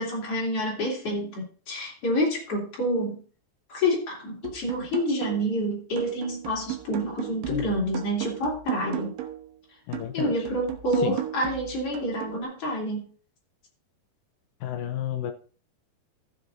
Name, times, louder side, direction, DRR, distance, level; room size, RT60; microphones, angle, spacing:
voice 1, 0.0-3.2 3.7-9.1 10.1-13.0, equal, 40° left, -3 dB, 3.4 m, -28 dB
sound 1, 4.4-5.6 6.0-9.5 9.9-12.4, right 13 dB, 75° right, 2.4 m, -36 dB
voice 2, 9.9-10.3 11.0-11.2 14.6-15.3, left 11 dB, 80° left, 7 dB, 1.9 m, -31 dB
14.5 x 7.6 x 2.7 m, 0.40 s
omnidirectional pair, 4.5 m